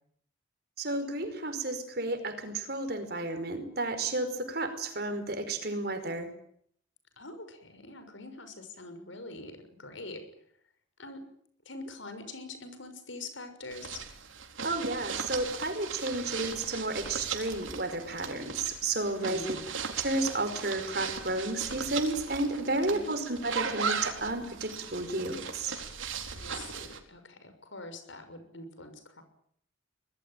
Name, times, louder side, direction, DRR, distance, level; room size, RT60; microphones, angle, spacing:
voice 1, 0.8-6.3 14.6-19.4 20.0-25.7, right 2 dB, 50° right, 9 dB, 4.9 m, -32 dB
voice 2, 7.2-10.2 11.0-11.2 11.6-14.0 19.1-19.6 22.7-23.1 26.3-29.2, left 2 dB, 75° left, 9 dB, 6.3 m, -44 dB
sound 1, 13.7-27.0, right 6 dB, 85° right, 4.2 m, -38 dB
24.5 x 21.0 x 9.2 m, 0.67 s
head